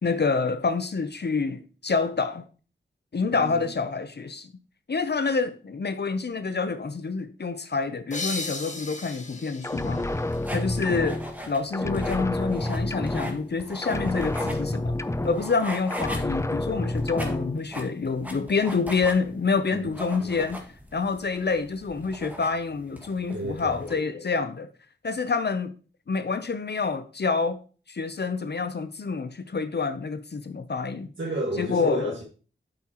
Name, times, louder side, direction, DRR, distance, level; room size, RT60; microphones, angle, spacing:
voice 1, 0.0-2.5 3.1-4.5 4.9-10.0 10.5-11.2 11.5-14.9 15.2-20.6 20.9-24.7 25.0-25.7 26.1-27.6 27.9-31.1 31.6-32.2, left 4 dB, 55° left, 0.7 m, -27 dB
voice 2, 3.3-3.8 19.7-20.2 23.3-23.8 31.2-32.2, right 1 dB, 70° right, 1.8 m, -33 dB
sound 1, 8.1-11.5, left 3 dB, 35° left, 1.4 m, -37 dB
sound 2, 9.6-11.5 11.7-13.6 13.8-15.6 15.9-17.6, left 2 dB, 15° left, 0.4 m, -29 dB
sound 3, 10.1-23.9, equal, 10° right, 1.9 m, -40 dB
8.9 x 7.6 x 3.0 m
wide cardioid pair, 75°, 20 cm